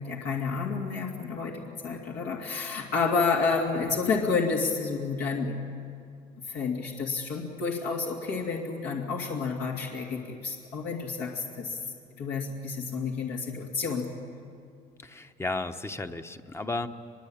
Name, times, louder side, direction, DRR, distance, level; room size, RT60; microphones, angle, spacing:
voice 1, 0.0-5.5 6.4-11.8 12.1-14.1, left 4 dB, 75° left, -1 dB, 2.6 m, -30 dB
voice 2, 15.0-16.9, left 2 dB, 15° left, 8 dB, 1.0 m, -33 dB
23.0 x 22.0 x 8.8 m, 2.4 s
cardioid pair, 110°, 17 cm